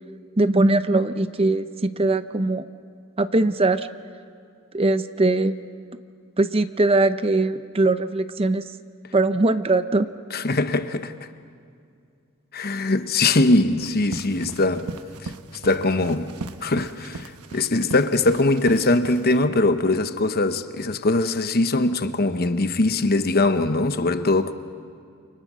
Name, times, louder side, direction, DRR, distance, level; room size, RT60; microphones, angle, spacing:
voice 1, 0.4-2.6 3.2-3.9 4.7-5.6 6.4-8.6 9.1-10.1, right 2 dB, 25° right, 0.6 m, -21 dB
voice 2, 10.3-11.1 12.5-14.9 15.2-15.3 15.6-24.5, left 2 dB, 45° left, 1.0 m, -21 dB
sound 1, 13.8-19.5, right 3 dB, 90° right, 1.1 m, -38 dB
29.5 x 27.5 x 6.2 m
head